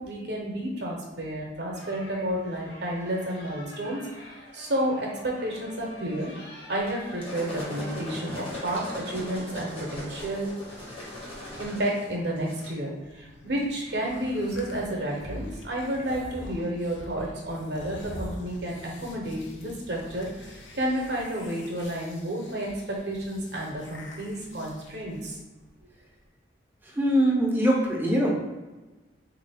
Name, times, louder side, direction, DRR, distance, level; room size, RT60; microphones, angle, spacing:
voice 1, 0.0-6.3 6.7-10.5 11.6-25.4, right 1 dB, 60° right, -2 dB, 0.7 m, -31 dB
sound 1, 1.7-9.0, left 1 dB, 60° left, 1.0 m, -47 dB
sound 2, 6.9-12.7, left 2 dB, 30° left, 0.9 m, -38 dB
sound 3, 13.0-25.4, left 1 dB, 80° left, 0.5 m, -45 dB
voice 2, 26.8-28.3, equal, 10° right, -1 dB, 0.5 m, -22 dB
3.5 x 2.5 x 3.4 m, 1.2 s
head